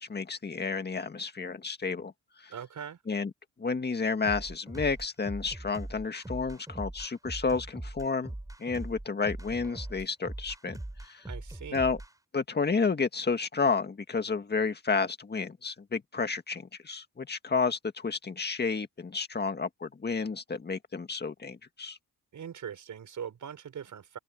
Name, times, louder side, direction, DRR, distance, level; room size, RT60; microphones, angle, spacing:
voice 1, 0.0-2.1 2.4-2.5 3.1-3.3 3.6-8.3 8.6-10.8 11.0-11.2 11.7-12.0 12.3-22.0, left 4 dB, 30° left, 1.9 m, -31 dB
voice 2, 2.5-3.0 11.3-11.9 22.3-24.2, right 8 dB, 65° right, 6.3 m, -41 dB
sound 1, 4.2-12.1, right 1 dB, 10° right, 4.6 m, -41 dB
cardioid pair, 95°, 32 cm